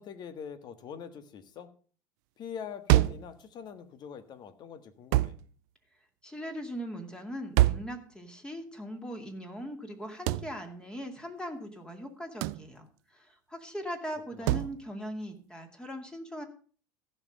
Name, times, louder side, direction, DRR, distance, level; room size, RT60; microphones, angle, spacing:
voice 1, 0.0-1.7 2.4-5.4 14.3-14.7, left 7 dB, 45° left, 12 dB, 1.5 m, -43 dB
sound 1, 2.9-3.3 5.1-5.4 7.6-7.9 10.3-10.5 12.4-12.7 14.5-14.7, right 17 dB, 65° right, 0.4 m, -24 dB
voice 2, 6.2-16.5, equal, 10° left, 4 dB, 2.3 m, -40 dB
14.5 x 5.8 x 6.4 m, 0.43 s
hypercardioid pair, 80°, 10 cm